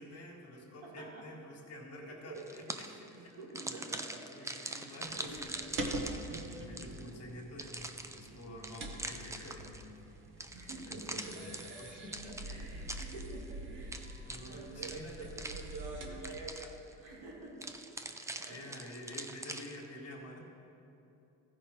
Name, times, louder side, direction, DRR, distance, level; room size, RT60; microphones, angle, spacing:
voice 1, 0.0-2.9 3.2-3.4 4.3-6.1 6.6-10.0 10.4-12.4 14.2-15.1 18.4-20.4, left 1 dB, 45° left, 0 dB, 1.7 m, -49 dB
voice 2, 0.5-1.3 2.0-5.8 6.8-7.2 8.2-8.8 10.5-11.4 11.7-17.7 18.3-19.0, right 2 dB, 90° right, -3 dB, 2.3 m, -49 dB
sound 1, 2.4-3.1 3.5-7.1 7.6-9.9 10.4-13.5 13.9-16.0 16.2-16.9 17.6-19.9, right 2 dB, 10° right, 0.4 m, -43 dB
sound 2, 5.1-16.5, right 1 dB, 35° right, 1.0 m, -45 dB
14.0 x 5.3 x 4.3 m, 2.8 s
cardioid pair, 110°, 34 cm